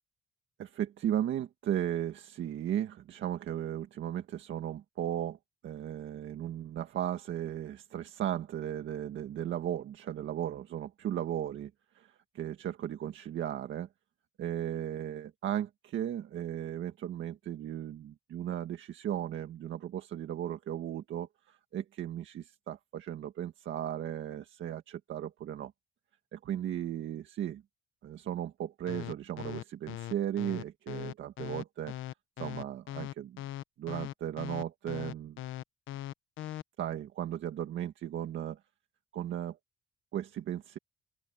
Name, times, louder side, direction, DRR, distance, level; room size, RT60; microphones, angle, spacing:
voice 1, 0.6-5.4 5.6-13.9 14.4-25.7 26.3-27.6 28.0-31.9 32.4-33.4 33.8-35.4 36.8-38.6 39.1-39.6 40.1-40.8, right 11 dB, 70° right, 1.8 m, -36 dB
sound 1, 28.9-36.6, left 14 dB, 80° left, 1.1 m, -40 dB
open air
cardioid pair, 90°, 20 cm